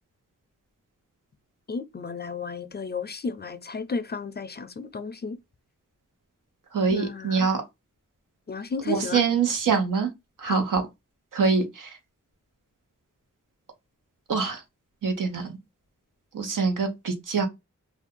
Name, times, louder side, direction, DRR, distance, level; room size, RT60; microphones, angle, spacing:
voice 1, 1.7-5.4 6.9-7.5 8.5-9.2 10.4-10.6, left 4 dB, 35° left, 0.4 m, -33 dB
voice 2, 6.7-7.6 8.8-10.1 10.4-10.8 11.3-12.0 14.3-14.6 15.0-15.5 16.3-17.5, right 5 dB, 90° right, 0.9 m, -24 dB
2.6 x 2.3 x 3.6 m
wide cardioid pair, 100°, 31 cm